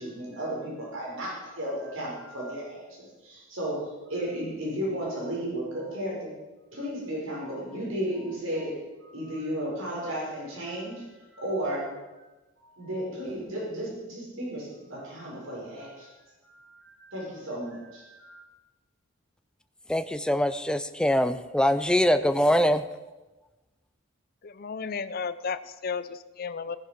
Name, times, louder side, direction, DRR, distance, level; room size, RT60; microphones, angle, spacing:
voice 1, 0.0-3.8 4.1-6.3 6.7-8.7 9.0-11.8 12.6-18.4, right 1 dB, 85° right, -4 dB, 5.4 m, -34 dB
voice 2, 19.9-22.8, equal, 5° left, 10 dB, 0.5 m, -23 dB
voice 3, 24.4-26.8, left 5 dB, 50° left, 13 dB, 0.6 m, -33 dB
17.0 x 10.0 x 5.2 m, 1.1 s
head